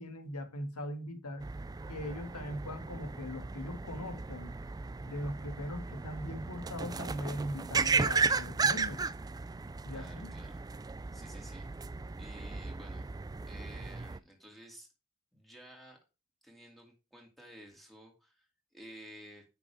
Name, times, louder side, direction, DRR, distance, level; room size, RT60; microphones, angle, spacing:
voice 1, 0.0-1.5 1.9-4.6 5.1-9.0 9.9-10.3, left 1 dB, 85° left, 1.9 m, -40 dB
sound 1, 1.4-14.2, right 4 dB, 15° right, 0.3 m, -35 dB
voice 2, 9.9-10.6 11.1-11.7 12.2-13.0 13.5-14.9 15.3-16.0 16.4-19.4, equal, ahead, 2.5 m, -53 dB
9.5 x 6.2 x 3.4 m
head